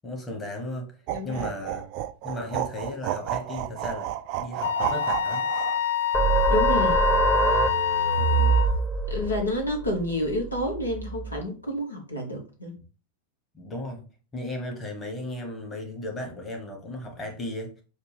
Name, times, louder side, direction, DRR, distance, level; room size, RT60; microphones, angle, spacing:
voice 1, 0.0-0.9 1.2-1.9 2.2-4.1 4.4-5.5 8.2-8.6 13.5-14.1 14.3-17.8, left 1 dB, 20° left, 1.2 m, -35 dB
voice 2, 1.1-1.5 6.5-7.0 7.5-8.2 9.1-12.7, left 1 dB, 80° left, 1.2 m, -30 dB
sound 1, 1.1-5.8, right 12 dB, 45° right, 0.3 m, -31 dB
Wind instrument woodwind instrument, 4.6-8.8, left 9 dB, 60° left, 0.4 m, -26 dB
sound 2, 6.1-11.4, right 3 dB, 5° right, 0.8 m, -25 dB
6.5 x 2.4 x 3.3 m
figure-of-eight pair, 90°, 0 cm